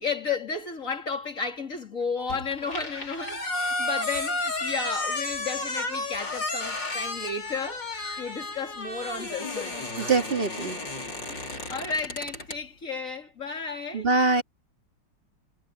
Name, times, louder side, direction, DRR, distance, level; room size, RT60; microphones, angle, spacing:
voice 1, 0.0-7.8 8.2-9.8 11.3-14.1, left 4 dB, 35° left, 3.2 m, -33 dB
sound 1, 2.3-12.6, left 2 dB, 55° left, 6.4 m, -32 dB
voice 2, 10.0-10.8 13.9-14.4, right 3 dB, 25° right, 3.0 m, -23 dB
omnidirectional pair, 2.4 m